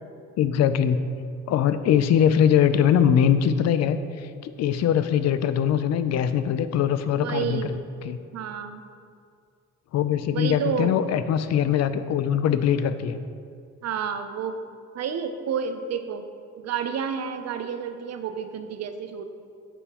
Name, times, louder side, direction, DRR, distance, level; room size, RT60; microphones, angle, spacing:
voice 1, 0.4-1.1 1.5-4.0 4.4-7.7 8.0-8.2 9.9-13.2, left 9 dB, 60° left, 11 dB, 0.4 m, -22 dB
voice 2, 7.1-7.8 8.3-8.8 10.3-11.0 13.8-14.6 14.9-16.2 16.6-19.2, right 7 dB, 60° right, 8 dB, 0.6 m, -30 dB
8.1 x 5.5 x 2.9 m, 2.3 s
cardioid pair, 90°, 30 cm